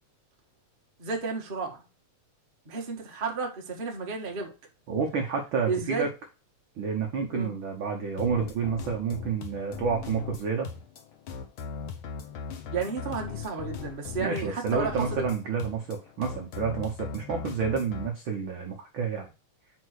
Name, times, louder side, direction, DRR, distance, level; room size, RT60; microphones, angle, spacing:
voice 1, 1.0-1.8 2.6-4.5 5.7-6.1 7.3-7.5 12.7-15.2, right 4 dB, 40° right, 0.7 m, -32 dB
voice 2, 4.9-6.1 6.8-10.7 14.2-19.3, right 6 dB, 80° right, 1.1 m, -29 dB
sound 1, 8.2-18.1, left 6 dB, 85° left, 1.1 m, -39 dB
5.4 x 4.7 x 6.4 m
omnidirectional pair, 3.7 m